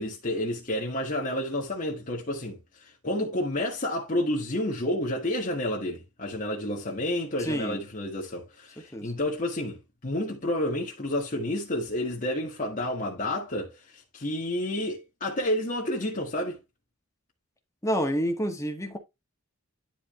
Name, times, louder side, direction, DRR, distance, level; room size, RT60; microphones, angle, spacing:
voice 1, 0.0-16.6, left 1 dB, 40° left, 1.8 m, -30 dB
voice 2, 7.4-7.8 8.9-9.1 17.8-19.0, equal, 15° left, 1.8 m, -28 dB
10.5 x 4.9 x 3.1 m
head